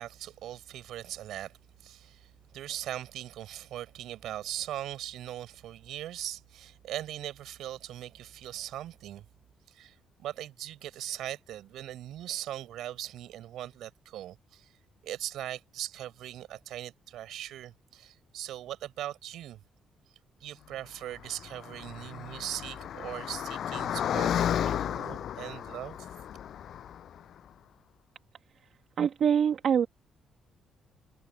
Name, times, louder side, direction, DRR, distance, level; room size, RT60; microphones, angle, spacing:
voice 1, 0.0-1.5 1.8-9.2 9.7-14.7 15.0-19.6 20.4-26.1, right 12 dB, 80° right, 6.4 m, -40 dB
Car passing by, 21.2-27.2, left 10 dB, 65° left, 7.9 m, -33 dB
voice 2, 29.0-29.9, right 8 dB, 60° right, 2.0 m, -24 dB
cardioid pair, 90°, 0 cm